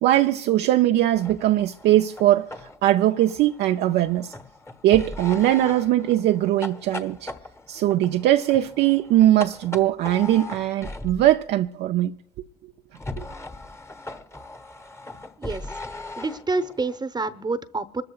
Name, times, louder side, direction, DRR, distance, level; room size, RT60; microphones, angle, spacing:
voice 1, 0.0-2.5 2.8-4.3 4.8-7.3 7.7-12.1 13.2-13.3, right 13 dB, 55° right, 0.5 m, -20 dB
sound 1, 1.1-11.4 12.9-17.0, left 2 dB, 10° left, 1.1 m, -39 dB
voice 2, 15.4-15.7 16.2-18.0, right 3 dB, 20° right, 0.9 m, -28 dB
26.5 x 13.5 x 2.4 m
hypercardioid pair, 55°, 21 cm